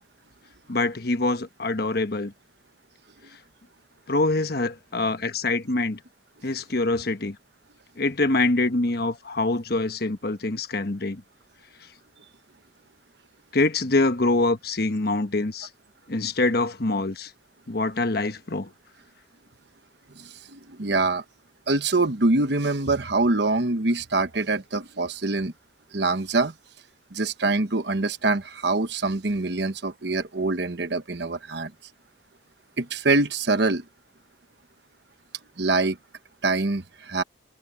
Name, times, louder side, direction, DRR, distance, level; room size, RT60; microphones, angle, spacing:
voice 1, 0.7-2.3 4.1-6.0 6.4-7.4 8.0-11.2 13.5-15.7 16.1-17.3 17.7-18.7, left 2 dB, 55° left, 1.2 m, -25 dB
voice 2, 20.5-21.2 21.7-25.5 25.9-26.5 27.1-31.7 32.8-33.8 35.6-36.0 36.4-37.2, right 3 dB, 60° right, 1.2 m, -24 dB
head